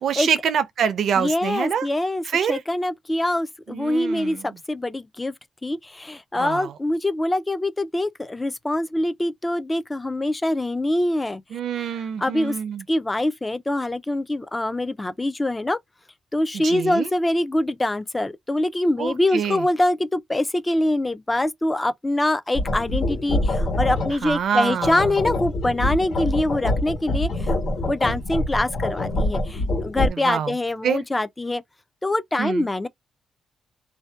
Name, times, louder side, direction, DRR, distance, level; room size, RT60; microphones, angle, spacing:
voice 1, 0.0-1.9 2.2-2.6 3.7-4.5 6.4-6.7 11.5-12.8 16.5-17.1 19.0-19.6 24.2-25.1 30.1-30.5 30.8-31.0 32.4-32.7, right 7 dB, 70° right, 0.5 m, -26 dB
voice 2, 1.2-5.3 5.6-11.4 12.2-12.6 12.9-15.8 16.3-27.6 27.9-31.6 32.0-32.9, left 1 dB, 15° left, 0.3 m, -24 dB
sound 1, 22.5-24.2 24.7-30.1, left 1 dB, 60° left, 1.2 m, -25 dB
2.6 x 2.1 x 2.2 m
cardioid pair, 110°, 0 cm